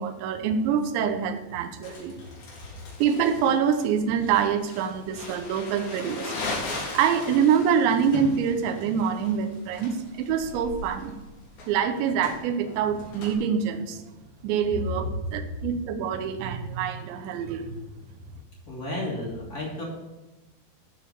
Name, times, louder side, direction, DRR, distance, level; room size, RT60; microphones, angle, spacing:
voice 1, 0.0-2.2 3.0-6.4 6.9-11.1 11.7-14.0 14.4-17.8, right 7 dB, 75° right, 7 dB, 2.7 m, -25 dB
Crumpling crinkling, 1.8-13.3, left 3 dB, 70° left, 5.4 m, -38 dB
voice 2, 18.6-19.8, left 1 dB, 25° left, -5 dB, 2.1 m, -32 dB
13.0 x 4.8 x 6.9 m, 1.1 s
omnidirectional pair, 6.0 m